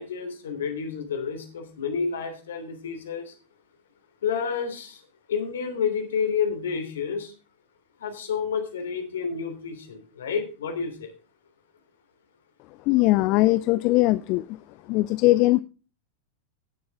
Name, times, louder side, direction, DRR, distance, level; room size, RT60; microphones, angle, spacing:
voice 1, 0.0-3.3 4.2-5.0 5.3-7.3 8.0-11.1, left 6 dB, 65° left, 5 dB, 3.2 m, -29 dB
voice 2, 12.9-14.4 14.9-15.6, left 19 dB, 40° left, 16 dB, 0.4 m, -20 dB
17.5 x 7.1 x 3.6 m, 0.35 s
figure-of-eight pair, 90°, 0 cm